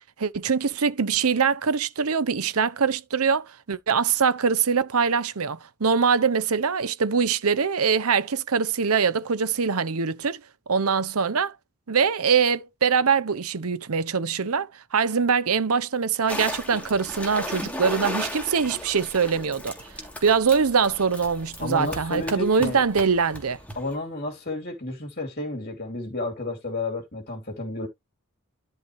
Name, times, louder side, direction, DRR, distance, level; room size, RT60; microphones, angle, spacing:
voice 1, 0.2-10.4 10.7-11.5 11.9-19.8 20.2-23.6, right 6 dB, 85° right, 0.8 m, -23 dB
sound 1, 16.3-24.0, left 1 dB, 5° left, 3.0 m, -36 dB
voice 2, 21.6-22.8 23.7-27.9, left 2 dB, 45° left, 2.8 m, -31 dB
13.0 x 4.8 x 3.2 m
head